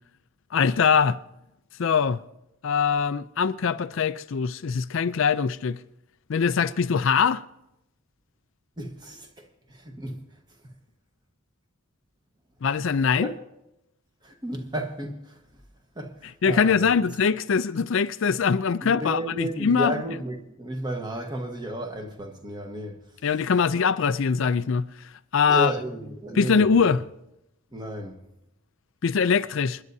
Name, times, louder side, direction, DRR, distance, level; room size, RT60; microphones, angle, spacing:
voice 1, 0.5-1.2 1.8-2.2 2.6-5.8 6.3-7.4 12.6-13.3 16.4-20.0 23.2-24.9 25.3-25.7 26.4-27.0 29.0-29.8, left 6 dB, 60° left, 0.4 m, -22 dB
voice 2, 8.8-9.3 9.7-10.2 13.2-13.4 14.2-15.4 15.9-17.0 18.8-23.0 25.5-27.0 27.7-28.2, right 1 dB, 20° right, 1.3 m, -33 dB
27.5 x 11.0 x 2.7 m
head